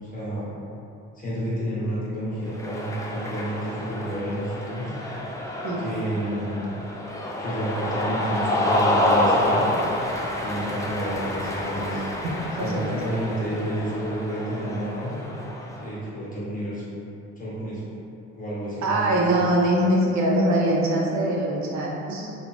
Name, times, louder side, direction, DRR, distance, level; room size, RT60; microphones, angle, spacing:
voice 1, 0.0-0.5 1.1-4.9 5.8-6.7 7.4-9.7 10.4-12.0 12.6-15.2 15.8-16.8 17.4-17.8 18.4-19.4, right 1 dB, 25° left, -9 dB, 1.2 m, -30 dB
Cheering, 2.5-15.9, left 1 dB, 10° left, 0.4 m, -28 dB
voice 2, 12.6-13.0 18.8-22.4, right 1 dB, 65° right, -2 dB, 0.6 m, -23 dB
3.2 x 3.1 x 2.5 m, 2.7 s
cardioid pair, 90°, 30 cm